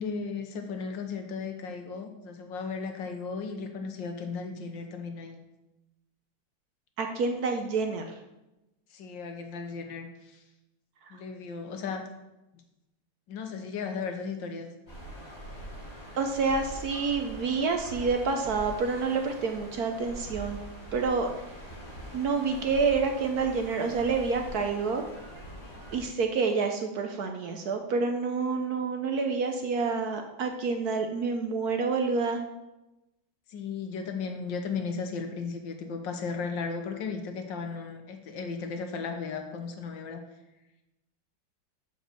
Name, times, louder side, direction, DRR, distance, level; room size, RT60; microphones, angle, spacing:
voice 1, 0.0-5.4 8.9-10.4 11.1-12.0 13.3-14.7 33.5-40.2, left 5 dB, 75° left, 5 dB, 1.6 m, -35 dB
voice 2, 7.0-8.1 16.2-20.6 20.9-21.3 22.1-25.0 25.9-32.4, right 4 dB, 65° right, 4 dB, 1.1 m, -28 dB
sound 1, 14.9-26.1, equal, 15° left, 2.8 m, -43 dB
6.4 x 5.2 x 6.7 m, 0.97 s
omnidirectional pair, 2.1 m